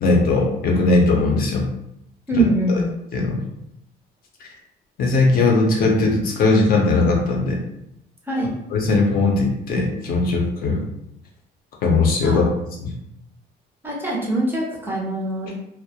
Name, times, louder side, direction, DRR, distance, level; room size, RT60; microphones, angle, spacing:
voice 1, 0.0-1.7 2.4-2.8 3.1-3.4 5.0-7.6 8.7-10.8 11.8-12.5 12.8-13.0, left 3 dB, 55° left, 0 dB, 0.6 m, -19 dB
voice 2, 2.3-2.8 8.3-8.5 12.2-12.4 13.8-15.5, right 2 dB, 10° right, -4 dB, 0.4 m, -22 dB
2.3 x 2.1 x 2.7 m, 0.79 s
cardioid pair, 160°, 18 cm